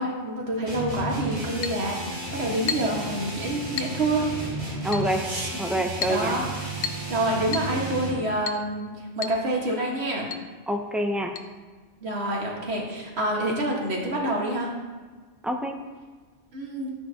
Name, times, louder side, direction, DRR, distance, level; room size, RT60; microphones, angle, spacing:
voice 1, 0.0-4.3 5.3-5.5 6.1-6.8 7.1-8.9 9.2-10.3 12.0-14.7 16.5-16.9, right 1 dB, 60° right, -2 dB, 1.8 m, -27 dB
sound 1, 0.7-8.3, right 2 dB, 40° right, 2.1 m, -33 dB
Chink clink, 1.6-1.8 2.7-3.0 3.8-4.0 4.9-5.1 6.0-6.2 6.8-7.1 7.5-7.7 8.5-8.7 9.2-9.4 9.7-9.8 10.3-10.5 11.4-11.5, left 6 dB, 60° left, 0.7 m, -32 dB
voice 2, 4.8-5.2 5.6-6.4 10.7-11.3 15.4-15.7, equal, ahead, 3 dB, 0.4 m, -26 dB
11.5 x 8.9 x 2.8 m, 1.4 s
omnidirectional pair, 1.3 m